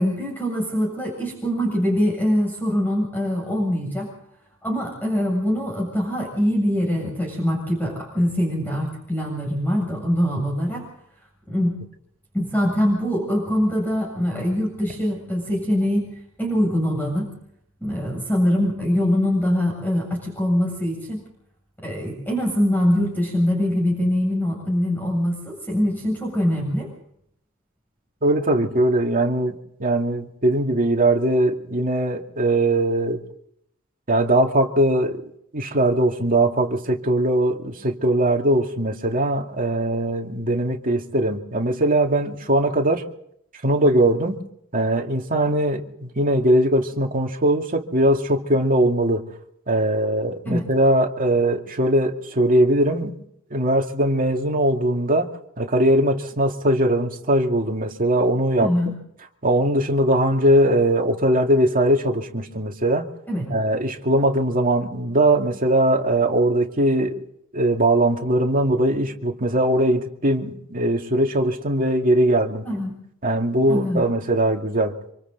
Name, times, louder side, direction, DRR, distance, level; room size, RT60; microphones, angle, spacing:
voice 1, 0.0-4.1 4.6-10.9 11.5-11.8 12.3-16.1 16.4-17.3 17.8-21.2 21.8-26.9 50.4-50.7 58.6-58.9 63.3-63.5 72.6-73.0 73.7-74.0, equal, 10° left, 7.4 m, -23 dB
voice 2, 28.2-33.2 34.1-35.2 35.5-43.1 43.6-44.4 44.7-49.2 49.7-53.2 53.5-58.9 59.4-63.1 63.5-67.2 67.5-72.7 73.2-74.9, right 1 dB, 40° right, 2.4 m, -20 dB
27.0 x 26.5 x 4.1 m
head